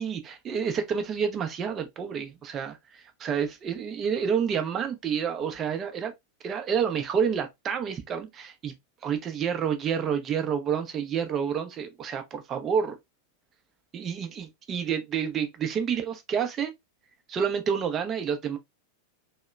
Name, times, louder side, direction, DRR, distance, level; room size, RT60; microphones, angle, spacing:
voice 1, 0.0-6.1 6.4-8.7 9.0-13.0 13.9-16.7 17.3-18.6, right 7 dB, 25° right, 0.6 m, -29 dB
2.8 x 2.1 x 2.3 m
figure-of-eight pair, 90°, 0 cm